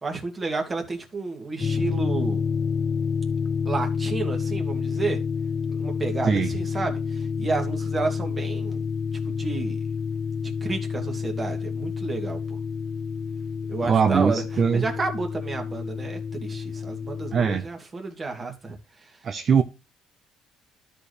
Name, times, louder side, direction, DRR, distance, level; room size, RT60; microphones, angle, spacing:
voice 1, 0.0-2.4 3.7-5.2 5.8-8.8 9.3-9.8 10.4-12.4 13.7-14.4 14.7-18.8, right 3 dB, 25° right, 2.1 m, -31 dB
sound 1, 1.6-17.6, left 6 dB, 30° left, 0.5 m, -29 dB
voice 2, 13.8-14.9 17.3-17.7 19.2-19.6, right 6 dB, 40° right, 0.6 m, -21 dB
12.5 x 4.3 x 3.4 m
cardioid pair, 120°, 0 cm